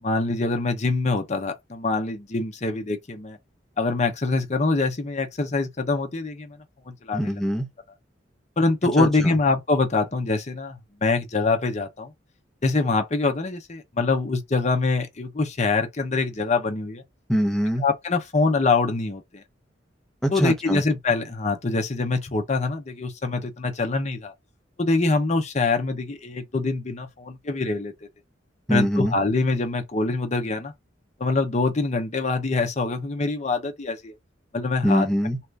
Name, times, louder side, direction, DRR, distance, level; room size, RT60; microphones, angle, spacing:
voice 1, 0.0-3.4 3.8-6.6 6.9-7.4 8.6-12.1 12.6-17.0 17.8-19.4 20.3-24.3 24.8-27.9 28.7-30.7 31.2-34.1 34.5-35.1, left 3 dB, 40° left, 0.8 m, -24 dB
voice 2, 7.1-7.7 9.0-9.4 17.3-17.9 20.2-20.8 28.7-29.2 34.8-35.4, equal, ahead, 0.8 m, -23 dB
2.9 x 2.4 x 3.4 m
head